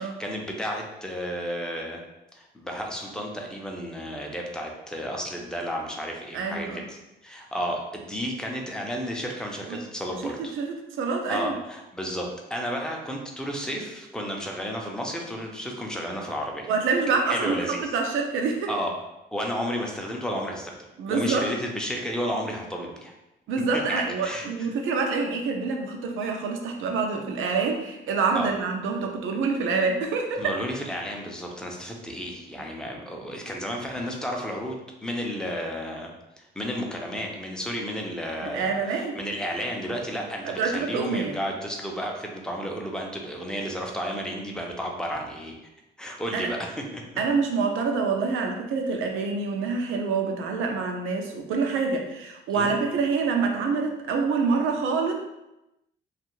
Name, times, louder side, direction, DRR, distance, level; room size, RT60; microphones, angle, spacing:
voice 1, 0.0-2.0 2.3-10.5 11.3-16.7 17.3-17.9 18.7-18.9 19.3-20.8 21.1-23.1 23.9-24.7 28.3-28.5 30.4-36.1 36.4-45.5 46.0-47.0 52.5-52.7, equal, 5° left, 0 dB, 0.5 m, -32 dB
voice 2, 6.3-6.8 9.7-9.8 10.2-11.6 16.7-18.7 21.0-21.5 23.5-30.6 38.4-39.2 40.4-41.4 46.3-46.5 47.2-55.1, right 4 dB, 85° right, 2 dB, 0.5 m, -26 dB
2.5 x 2.4 x 3.0 m, 0.94 s
cardioid pair, 90°, 20 cm